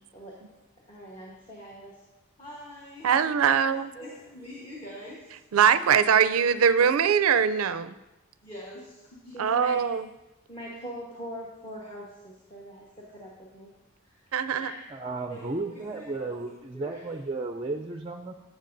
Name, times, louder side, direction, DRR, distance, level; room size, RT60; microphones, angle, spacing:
voice 1, 0.9-2.0 2.4-3.2 3.7-5.4 8.4-9.9 10.5-13.7 14.0-14.3 14.6-14.8 15.3-16.4 16.7-17.1, equal, 25° left, -4 dB, 1.2 m, -43 dB
voice 2, 3.0-3.9 5.5-7.9 9.4-10.1 14.3-14.7, right 7 dB, 90° right, 13 dB, 0.4 m, -22 dB
voice 3, 14.9-18.3, right 3 dB, 25° right, 4 dB, 0.4 m, -34 dB
13.0 x 7.2 x 2.6 m, 0.98 s
head